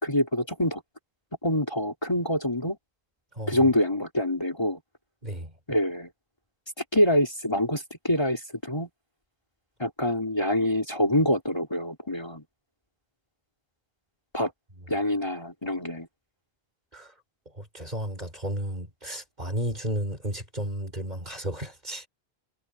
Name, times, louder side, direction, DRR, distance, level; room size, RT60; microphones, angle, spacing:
voice 1, 0.0-0.8 1.4-2.8 3.5-4.8 5.7-6.1 6.8-8.9 9.8-12.4 14.3-14.5 14.9-16.1, left 1 dB, 25° left, 3.4 m, -25 dB
voice 2, 5.2-5.5 16.9-17.1 17.5-22.1, equal, 40° right, 5.9 m, -33 dB
omnidirectional pair, 1.1 m